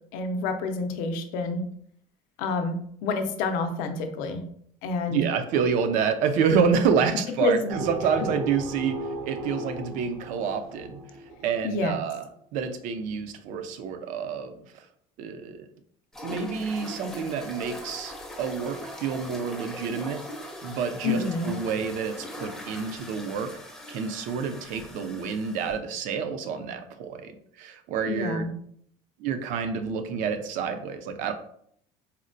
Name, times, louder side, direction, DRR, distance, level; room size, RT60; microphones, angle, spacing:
voice 1, 0.1-1.6 2.4-4.5 4.8-5.2 7.4-7.7 11.6-12.0 21.0-21.5 28.1-28.5, left 3 dB, 75° left, 7 dB, 0.5 m, -28 dB
voice 2, 5.1-9.0 9.3-11.0 11.4-14.8 15.2-15.7 16.2-20.2 20.6-23.5 23.9-28.5 29.2-31.3, right 6 dB, 60° right, 8 dB, 0.5 m, -28 dB
sound 1, 7.7-11.7, right 1 dB, 90° right, 0.8 m, -36 dB
sound 2, 16.1-25.8, equal, 5° left, 0.5 m, -41 dB
4.2 x 2.1 x 2.5 m, 0.67 s
cardioid pair, 140°, 14 cm